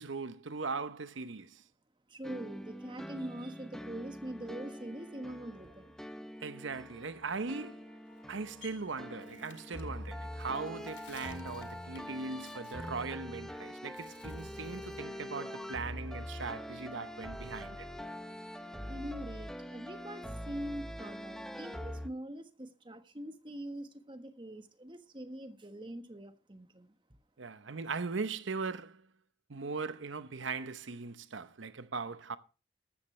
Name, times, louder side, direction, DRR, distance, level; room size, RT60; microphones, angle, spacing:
voice 1, 0.0-1.6 6.4-7.9 8.3-17.9 27.4-29.1 29.5-32.4, right 4 dB, 80° right, 0.8 m, -39 dB
voice 2, 2.1-5.9 18.9-26.9, right 1 dB, 25° right, 1.3 m, -43 dB
sound 1, 2.2-22.1, equal, 5° left, 0.8 m, -44 dB
sound 2, 4.4-19.5, right 1 dB, 35° left, 1.9 m, -63 dB
Bird, 8.1-13.5 13.9-15.1 15.5-17.2, left 7 dB, 75° left, 1.9 m, -59 dB
14.5 x 13.0 x 3.2 m
head